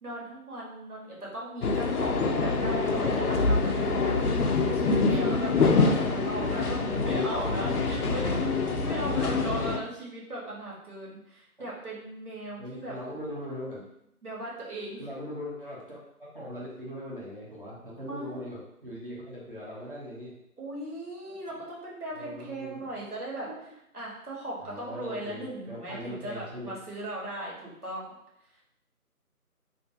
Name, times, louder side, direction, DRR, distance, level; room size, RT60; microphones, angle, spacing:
voice 1, 0.0-12.9 14.2-15.0 18.0-18.5 20.6-23.5 23.9-28.2, right 1 dB, 80° right, -5 dB, 1.3 m, -38 dB
sound 1, 1.6-9.8, left 4 dB, 85° left, 0.5 m, -26 dB
voice 2, 5.1-5.6 5.9-6.5 7.0-8.3 12.6-13.8 15.0-20.3 22.1-22.8 23.4-23.5 24.6-26.7, equal, 35° right, -7 dB, 0.8 m, -40 dB
2.6 x 2.5 x 2.7 m, 0.78 s
figure-of-eight pair, 165°, 45 cm